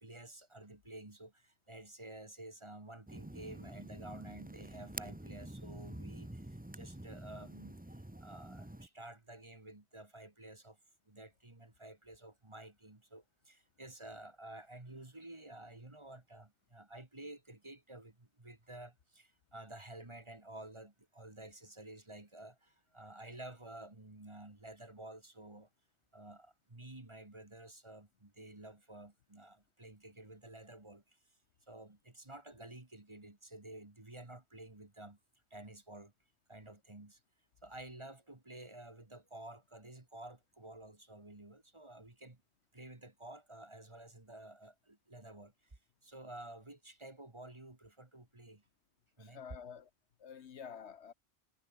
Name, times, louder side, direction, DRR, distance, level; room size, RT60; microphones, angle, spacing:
voice 1, 0.0-10.8 11.1-25.7 26.1-31.2 31.7-35.2 35.5-36.1 36.5-37.2 37.6-42.4 42.7-48.7 49.2-49.4, right 1 dB, 25° right, 2.0 m, -52 dB
sound 1, 3.1-8.9, right 1 dB, 5° right, 1.2 m, -48 dB
voice 2, 49.2-49.9 50.2-51.1, left 7 dB, 65° left, 1.1 m, -49 dB
omnidirectional pair, 1.2 m